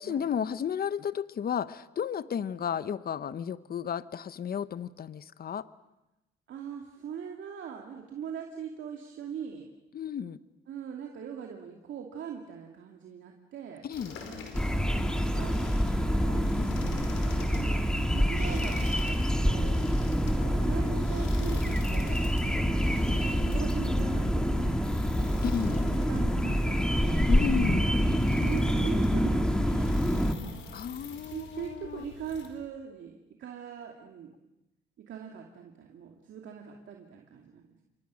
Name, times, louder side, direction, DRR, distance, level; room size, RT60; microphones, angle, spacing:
voice 1, 0.0-5.7 9.9-10.4 13.8-14.2 16.6-16.7 25.4-25.8 27.3-27.9 30.7-32.0, left 8 dB, 50° left, 15 dB, 1.0 m, -33 dB
voice 2, 6.5-9.7 10.7-13.9 14.7-14.8 15.3-16.5 17.5-18.8 19.4-20.1 20.5-22.3 22.9-25.5 26.0-27.3 28.4-30.0 31.2-34.3 35.1-37.8, right 7 dB, 70° right, 1 dB, 2.6 m, -41 dB
sound 1, 13.9-32.5, left 4 dB, 90° left, 4.9 m, -46 dB
sound 2, 14.5-30.3, equal, 5° left, 2.2 m, -26 dB
29.0 x 24.0 x 6.4 m, 0.95 s
cardioid pair, 90°, 20 cm